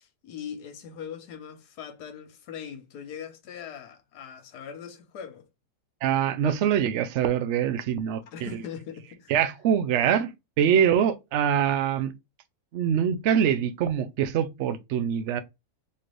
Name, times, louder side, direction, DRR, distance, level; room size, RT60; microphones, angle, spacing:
voice 1, 0.0-5.5 8.3-9.3, left 7 dB, 80° left, 1.4 m, -41 dB
voice 2, 6.0-8.5 9.3-10.3 10.6-12.1 12.7-15.4, right 8 dB, 65° right, 0.7 m, -24 dB
4.3 x 3.2 x 2.5 m
omnidirectional pair, 1.7 m